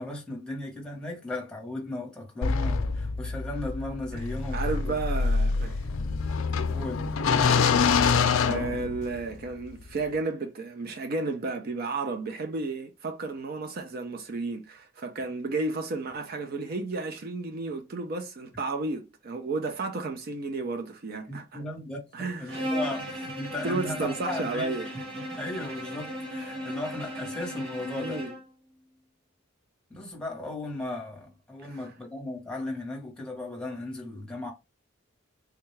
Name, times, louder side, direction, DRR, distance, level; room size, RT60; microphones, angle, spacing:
voice 1, 0.0-5.0 6.7-7.1 21.3-24.7 25.3-28.2 29.9-34.5, left 2 dB, 5° left, 0.9 m, -36 dB
sound 1, 2.4-9.3, left 5 dB, 80° left, 0.4 m, -26 dB
voice 2, 4.5-5.8 7.6-21.6 22.1-22.6 23.6-24.9 28.0-28.3 31.6-31.8, right 3 dB, 45° right, 0.4 m, -33 dB
Bowed string instrument, 22.5-28.5, equal, 65° right, 1.6 m, -36 dB
3.6 x 2.2 x 3.1 m
head